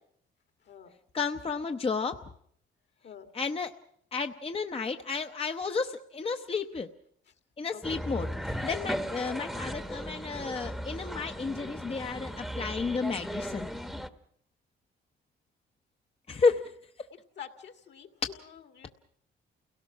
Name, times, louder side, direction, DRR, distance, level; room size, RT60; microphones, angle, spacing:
voice 1, 1.1-2.2 3.3-3.7 4.1-6.9 7.6-13.7 16.3-16.7, left 4 dB, 30° left, 6 dB, 0.8 m, -32 dB
sound 1, 7.8-14.1, equal, ahead, 1.0 m, -37 dB
voice 2, 17.4-18.1 18.7-18.9, left 8 dB, 60° left, 7 dB, 2.1 m, -46 dB
28.5 x 17.5 x 6.0 m, 0.67 s
cardioid pair, 90°, 20 cm